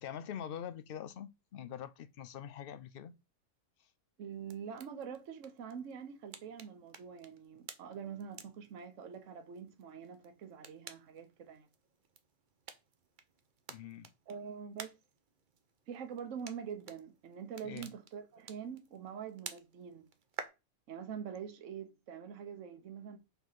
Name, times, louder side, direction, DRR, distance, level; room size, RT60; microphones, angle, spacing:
voice 1, 0.0-3.1 13.7-14.1 17.6-17.9, left 9 dB, 75° left, 0.5 m, -44 dB
voice 2, 4.2-11.7 14.3-15.0 15.9-20.1 20.9-23.2, right 7 dB, 60° right, 1.2 m, -45 dB
sound 1, 4.3-20.5, right 6 dB, 45° right, 0.7 m, -53 dB
5.7 x 3.6 x 5.7 m
omnidirectional pair, 1.5 m